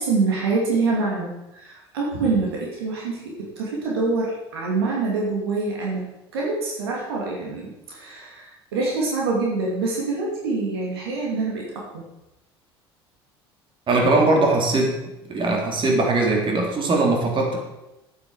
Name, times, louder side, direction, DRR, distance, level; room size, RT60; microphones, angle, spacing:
voice 1, 0.0-12.0, right 3 dB, 80° right, -3 dB, 2.6 m, -25 dB
voice 2, 13.9-15.0 15.3-17.6, right 2 dB, 40° right, 0 dB, 3.2 m, -20 dB
10.0 x 9.1 x 4.9 m, 0.96 s
hypercardioid pair, 65°, 13 cm